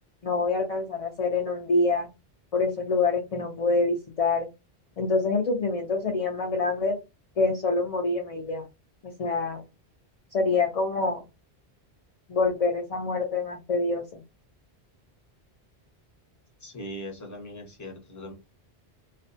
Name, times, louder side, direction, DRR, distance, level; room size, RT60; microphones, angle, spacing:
voice 1, 0.2-2.1 2.5-4.5 5.0-7.0 7.4-8.7 9.0-9.6 10.3-11.2 12.3-14.2, left 3 dB, 50° left, 2 dB, 0.5 m, -26 dB
voice 2, 16.6-18.3, equal, 20° left, 1 dB, 0.7 m, -40 dB
2.5 x 2.2 x 2.5 m, 0.25 s
omnidirectional pair, 1.1 m